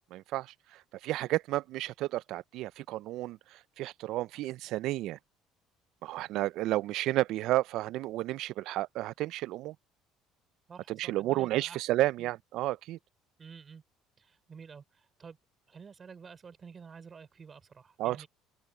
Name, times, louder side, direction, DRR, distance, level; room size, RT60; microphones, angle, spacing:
voice 1, 0.1-5.2 6.0-9.8 10.9-13.0 18.0-18.3, right 16 dB, 60° right, 0.3 m, -32 dB
voice 2, 10.7-11.8 12.2-12.3 13.4-13.8 14.2-15.4 15.7-18.3, right 6 dB, 25° right, 3.7 m, -50 dB
open air
cardioid pair, 150°, 0 cm